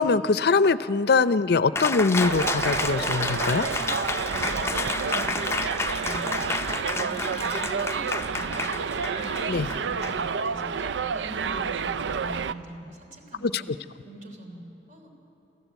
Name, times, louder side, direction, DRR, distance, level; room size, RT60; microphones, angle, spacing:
voice 1, 0.0-3.7 9.5-9.7 13.4-13.6, left 4 dB, 65° left, 14 dB, 0.5 m, -22 dB
Cheering, 1.8-10.7, left 3 dB, 15° left, 0.6 m, -31 dB
Subway metro underground, 2.2-12.5, right 6 dB, 80° right, 0.5 m, -29 dB
voice 2, 4.3-5.4 6.0-13.6 14.0-14.6 14.9-15.1, right 1 dB, 45° right, 3 dB, 3.4 m, -43 dB
27.0 x 14.0 x 8.2 m, 2.9 s
head